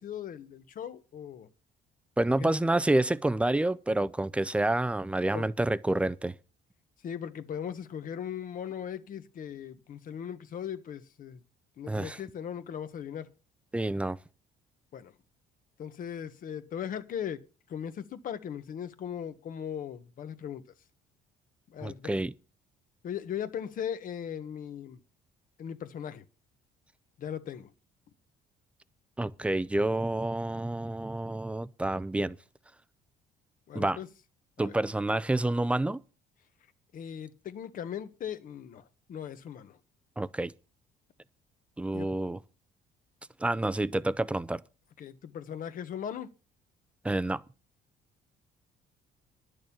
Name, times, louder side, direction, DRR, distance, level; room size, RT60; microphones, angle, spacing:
voice 1, 0.0-1.5 2.4-2.5 5.3-5.5 7.0-11.4 11.8-13.3 14.9-15.1 15.8-17.4 17.7-20.6 21.7-22.2 23.0-25.0 25.6-26.2 27.2-27.7 33.7-34.1 34.6-34.8 36.9-39.8 41.9-42.1 45.0-46.3, left 8 dB, 55° left, 1.3 m, -38 dB
voice 2, 2.2-6.4 11.9-12.2 13.7-14.2 21.8-22.3 29.2-32.4 33.7-34.0 34.6-36.0 40.2-40.5 41.8-42.4 43.4-44.6 47.0-47.4, right 2 dB, 5° right, 0.6 m, -28 dB
11.0 x 6.5 x 8.7 m
cardioid pair, 110°, 17 cm